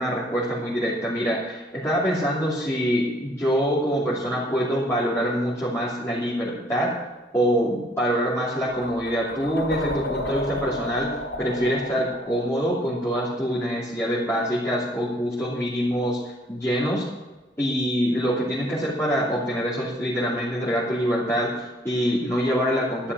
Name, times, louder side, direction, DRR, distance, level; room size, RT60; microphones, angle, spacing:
voice 1, 0.0-6.9 7.3-11.1 11.4-16.2 16.5-17.0 17.6-23.1, equal, 15° left, -8 dB, 2.9 m, -25 dB
sound 1, 8.7-13.6, left 1 dB, 80° left, 2.8 m, -33 dB
12.0 x 11.0 x 6.2 m, 1.2 s
head